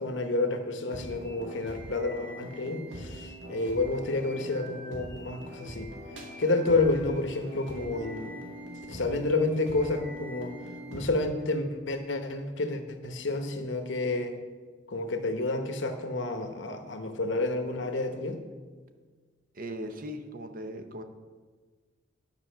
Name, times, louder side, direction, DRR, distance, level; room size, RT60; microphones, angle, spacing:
voice 1, 0.0-5.9 6.4-8.4 8.8-10.5 10.9-14.4 14.9-18.4, left 2 dB, 70° left, 7 dB, 0.9 m, -30 dB
sound 1, 0.9-11.0, equal, 70° right, 2.1 m, -42 dB
voice 2, 19.5-21.0, equal, 45° right, 7 dB, 0.7 m, -38 dB
10.0 x 5.5 x 6.6 m, 1.5 s
head